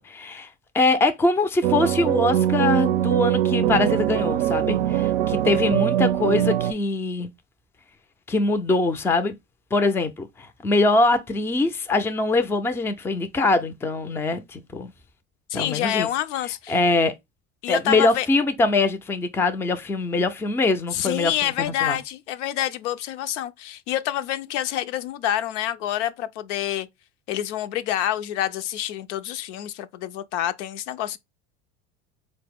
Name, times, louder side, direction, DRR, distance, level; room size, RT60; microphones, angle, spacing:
voice 1, 0.1-0.5 0.7-7.3 8.3-9.3 9.7-14.9 15.5-16.1 16.7-17.1 17.7-22.0, left 2 dB, 5° left, 0.3 m, -23 dB
sound 1, 1.6-6.7, right 12 dB, 85° right, 0.5 m, -22 dB
voice 2, 15.5-16.8 17.6-18.3 20.9-26.9 27.3-31.2, left 12 dB, 85° left, 0.5 m, -27 dB
4.0 x 2.0 x 3.4 m
supercardioid pair, 95°, 34 cm